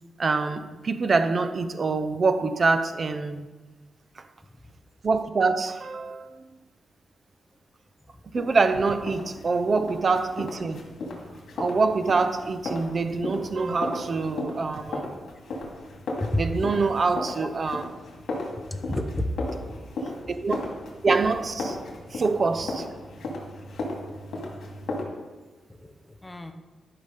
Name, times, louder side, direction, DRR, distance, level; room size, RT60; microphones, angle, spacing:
voice 1, 0.2-3.5 5.0-6.4 8.2-10.8 11.6-15.2 16.3-17.8 20.3-20.6 21.0-21.8 22.1-22.9, right 4 dB, 40° right, 0.7 m, -25 dB
sound 1, 8.4-25.0, left 2 dB, 75° left, 2.4 m, -36 dB
voice 2, 16.2-16.6 17.4-17.5 18.6-19.8 25.7-26.5, left 1 dB, 10° left, 0.8 m, -31 dB
11.5 x 6.0 x 5.2 m
cardioid pair, 115°, 0 cm